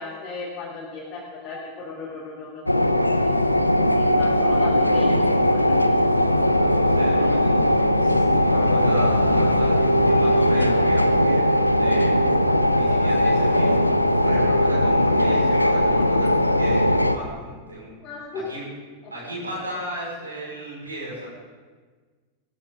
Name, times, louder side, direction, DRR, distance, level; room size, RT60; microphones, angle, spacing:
voice 1, 0.0-2.6 3.9-5.9 18.0-18.5 19.0-19.1, left 3 dB, 30° left, -7 dB, 4.1 m, -36 dB
sound 1, 2.7-17.2, left 1 dB, 85° left, 0.6 m, -19 dB
voice 2, 6.5-12.1 12.7-13.9 14.2-17.9 18.3-18.6 19.1-21.3, equal, 80° right, -5 dB, 5.6 m, -35 dB
17.5 x 14.5 x 3.9 m, 1.5 s
figure-of-eight pair, 90°, 0 cm